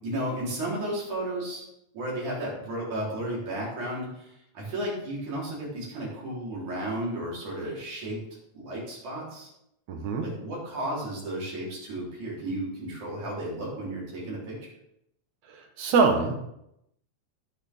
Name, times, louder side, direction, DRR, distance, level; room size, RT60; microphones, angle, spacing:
voice 1, 0.0-1.6 1.9-8.2 8.5-9.5 10.2-14.6, right 1 dB, 90° right, -5 dB, 5.5 m, -33 dB
voice 2, 9.9-10.2 15.8-16.3, right 4 dB, 70° right, 4 dB, 2.7 m, -23 dB
17.0 x 6.6 x 3.7 m, 0.80 s
omnidirectional pair, 3.3 m